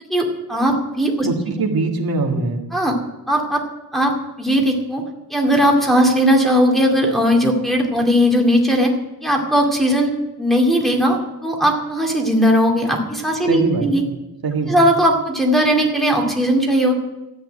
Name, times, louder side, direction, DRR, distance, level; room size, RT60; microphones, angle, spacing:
voice 1, 0.1-1.3 2.7-2.9 3.3-3.6 3.9-5.0 5.3-8.9 9.2-10.1 10.4-14.0 14.7-16.9, equal, ahead, -1 dB, 2.3 m, -18 dB
voice 2, 1.2-2.7 13.5-14.1 14.4-14.8, right 3 dB, 80° right, 2 dB, 2.1 m, -22 dB
13.5 x 9.0 x 8.8 m, 0.98 s
wide cardioid pair, 160°, 36 cm